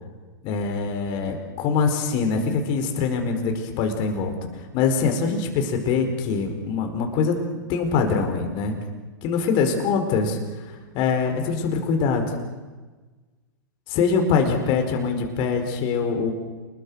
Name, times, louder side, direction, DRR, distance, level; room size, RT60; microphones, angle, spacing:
voice 1, 0.4-4.3 4.7-7.4 7.7-8.7 9.2-10.7 10.9-12.3 13.9-16.3, left 5 dB, 45° left, 4 dB, 4.8 m, -23 dB
28.5 x 21.0 x 6.6 m, 1.3 s
hypercardioid pair, 115°, 12 cm